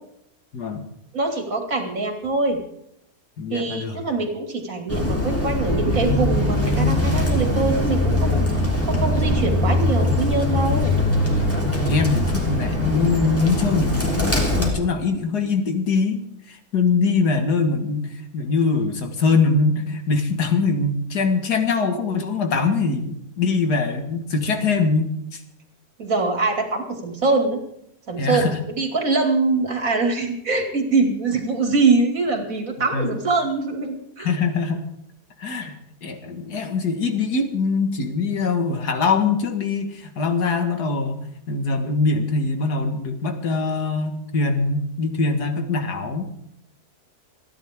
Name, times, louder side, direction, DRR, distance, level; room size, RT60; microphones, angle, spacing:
voice 1, 0.5-0.8 3.4-4.0 11.5-16.2 16.5-25.4 28.2-28.6 32.9-33.2 34.2-34.8 35.4-46.2, left 4 dB, 80° left, 6 dB, 2.3 m, -23 dB
voice 2, 1.1-2.6 3.5-10.9 26.0-27.6 28.1-34.3, right 3 dB, 55° right, 4 dB, 3.0 m, -23 dB
Bird, 4.9-14.7, left 1 dB, 10° left, 3.5 m, -21 dB
28.5 x 10.5 x 3.7 m, 0.76 s
omnidirectional pair, 1.7 m